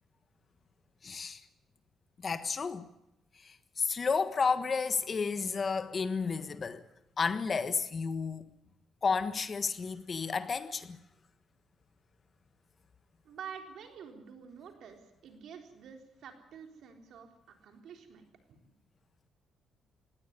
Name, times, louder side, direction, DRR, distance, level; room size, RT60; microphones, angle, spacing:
voice 1, 1.0-1.4 2.2-2.9 3.4-6.8 7.2-8.5 9.0-11.0, left 5 dB, 40° left, 1.4 m, -32 dB
voice 2, 13.2-18.2 18.5-18.6, right 7 dB, 70° right, 3.9 m, -48 dB
19.0 x 16.5 x 9.8 m
cardioid pair, 90°, 0 cm